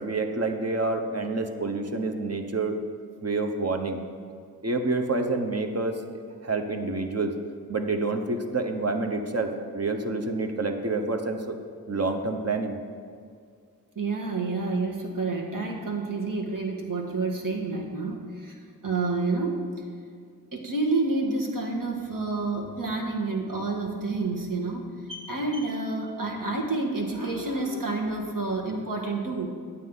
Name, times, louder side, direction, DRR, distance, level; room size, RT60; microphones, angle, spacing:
voice 1, 0.0-2.8 3.2-4.0 4.6-7.3 7.7-11.6 11.9-12.8, right 3 dB, 40° right, 5 dB, 1.0 m, -28 dB
voice 2, 13.9-18.6 18.8-19.7 20.5-29.5, right 3 dB, 55° right, 0 dB, 1.5 m, -29 dB
9.3 x 8.4 x 3.9 m, 2.2 s
cardioid pair, 40°, 38 cm